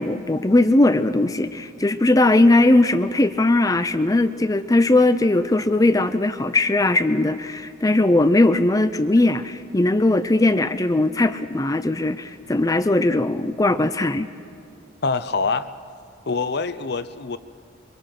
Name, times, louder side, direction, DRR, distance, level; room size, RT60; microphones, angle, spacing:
voice 1, 0.0-14.3, left 2 dB, 20° left, 11 dB, 0.5 m, -19 dB
voice 2, 15.0-15.7 16.3-17.4, left 4 dB, 60° left, 12 dB, 0.8 m, -25 dB
24.5 x 23.0 x 5.9 m, 2.4 s
head